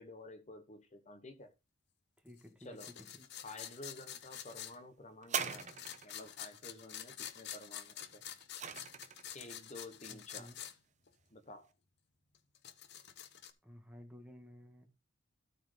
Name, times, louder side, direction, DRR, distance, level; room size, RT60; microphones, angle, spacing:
voice 1, 0.0-1.5 2.6-2.9 3.4-5.7 6.0-8.2 9.3-10.5 11.3-11.7, left 2 dB, 35° left, 1.2 m, -51 dB
voice 2, 2.2-3.3 10.1-10.6 13.6-14.9, left 1 dB, 5° right, 1.7 m, -54 dB
sound 1, 2.8-4.8 5.5-10.7 11.1-11.2 12.4-13.5, left 10 dB, 55° left, 0.9 m, -48 dB
sound 2, 5.2-6.3 8.0-9.4 10.2-10.3, right 7 dB, 35° right, 0.9 m, -40 dB
13.0 x 4.5 x 5.1 m
head